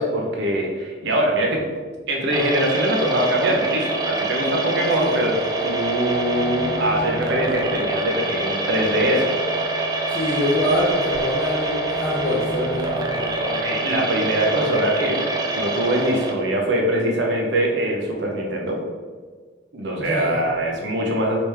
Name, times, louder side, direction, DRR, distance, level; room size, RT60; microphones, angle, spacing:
voice 1, 0.0-1.6 2.1-5.3 5.6-9.3 13.4-15.2 15.5-18.8 19.7-21.4, right 1 dB, 60° right, 0 dB, 0.7 m, -23 dB
sound 1, 2.3-16.3, right 2 dB, 20° right, 0.3 m, -25 dB
voice 2, 10.1-13.4 20.0-20.4, left 1 dB, 20° left, -7 dB, 0.6 m, -25 dB
3.3 x 3.0 x 3.2 m, 1.5 s
head